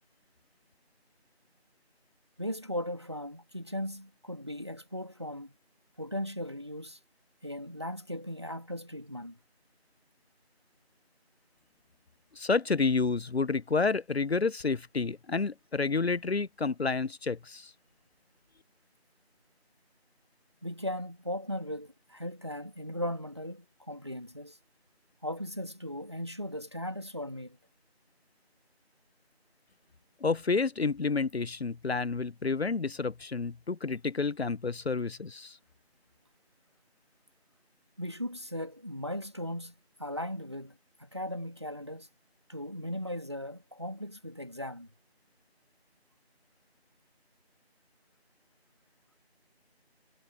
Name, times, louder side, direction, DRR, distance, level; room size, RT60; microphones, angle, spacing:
voice 1, 2.4-5.5 6.0-7.0 7.4-9.4 20.6-24.6 25.2-27.6 38.0-39.7 40.0-42.1 42.5-44.9, equal, 25° right, 2.2 m, -37 dB
voice 2, 12.3-17.7 30.2-35.6, left 4 dB, 70° left, 0.6 m, -30 dB
figure-of-eight pair, 180°, 32 cm